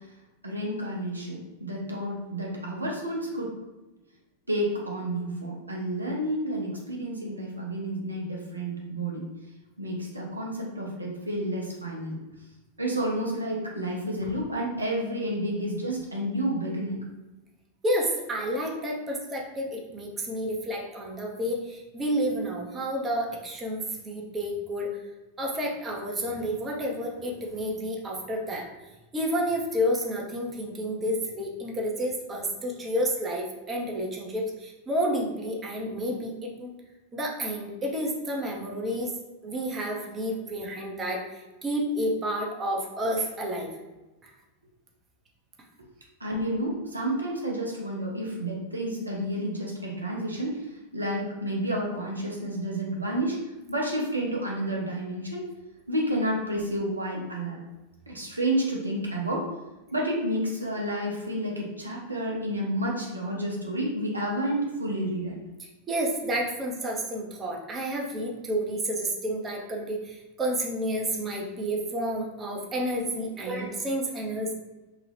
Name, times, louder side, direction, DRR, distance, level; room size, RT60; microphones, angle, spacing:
voice 1, 0.4-3.5 4.5-9.2 9.8-12.2 12.8-17.0 46.2-50.6 50.9-53.4 53.7-55.5 55.9-57.6 58.1-59.4 59.9-65.3 73.4-73.7, right 1 dB, 90° right, -2 dB, 0.6 m, -30 dB
voice 2, 17.8-24.9 25.4-36.7 37.1-39.1 39.4-43.7 44.2-44.3 65.6-74.5, equal, 20° right, -1 dB, 0.7 m, -30 dB
2.8 x 2.3 x 3.2 m, 1.1 s
figure-of-eight pair, 90°, 0 cm